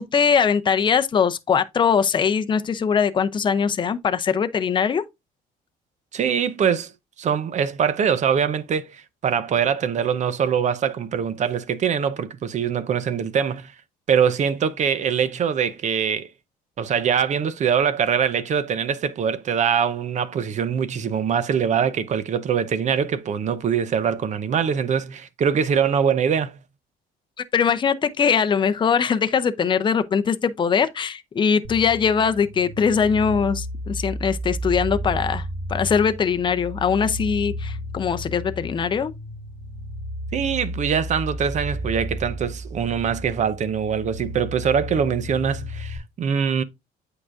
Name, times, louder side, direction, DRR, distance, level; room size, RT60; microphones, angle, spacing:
voice 1, 0.0-5.0 27.5-35.4 35.7-39.1, left 6 dB, 30° left, 0.6 m, -21 dB
voice 2, 6.1-6.9 7.2-13.7 14.1-16.3 16.8-26.6 40.3-46.6, right 7 dB, 45° right, 0.7 m, -23 dB
sound 1, 31.6-46.0, equal, 70° right, 3.1 m, -33 dB
8.5 x 4.8 x 2.5 m
cardioid pair, 110°, 17 cm